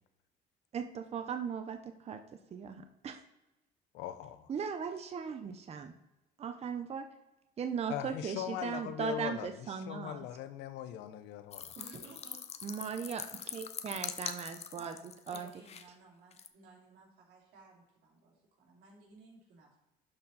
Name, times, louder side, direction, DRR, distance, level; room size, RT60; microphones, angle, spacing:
voice 1, 0.7-3.2 4.5-5.9 6.4-7.1 7.6-10.3 12.6-13.2 13.5-14.9 15.3-15.5, right 6 dB, 40° right, 7 dB, 0.7 m, -38 dB
voice 2, 3.9-4.5 7.9-11.7, left 11 dB, 90° left, 12 dB, 0.7 m, -40 dB
sound 1, 11.5-15.9 16.3-16.5, left 7 dB, 40° left, 0.6 m, -43 dB
voice 3, 11.7-12.4 13.0-13.4 14.7-15.0 15.3-19.8, right 3 dB, 80° right, -2 dB, 2.8 m, -56 dB
11.5 x 4.3 x 4.2 m, 0.96 s
cardioid pair, 110°, 17 cm